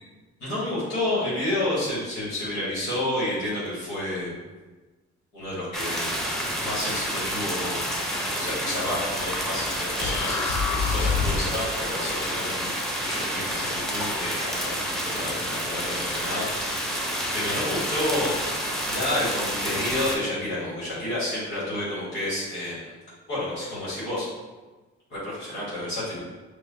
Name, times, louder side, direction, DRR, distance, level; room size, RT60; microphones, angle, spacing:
voice 1, 0.4-4.3 5.3-6.2 6.6-12.7 13.0-18.3 18.9-22.9 23.3-24.3 25.1-26.2, left 1 dB, 85° left, -10 dB, 1.5 m, -30 dB
sound 1, 5.7-20.2, equal, ahead, 0.8 m, -29 dB
sound 2, 10.0-11.6, left 5 dB, 60° left, 0.5 m, -26 dB
4.8 x 2.3 x 2.7 m, 1.2 s
supercardioid pair, 50°, 33 cm